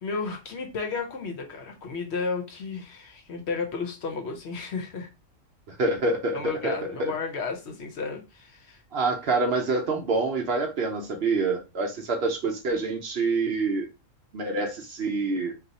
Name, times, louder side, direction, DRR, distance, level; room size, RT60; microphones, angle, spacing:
voice 1, 0.0-5.1 6.3-8.8, left 4 dB, 60° left, 0.9 m, -33 dB
voice 2, 5.7-7.1 8.9-13.9 14.3-15.5, right 3 dB, 60° right, 0.8 m, -26 dB
2.7 x 2.4 x 3.9 m
omnidirectional pair, 1.4 m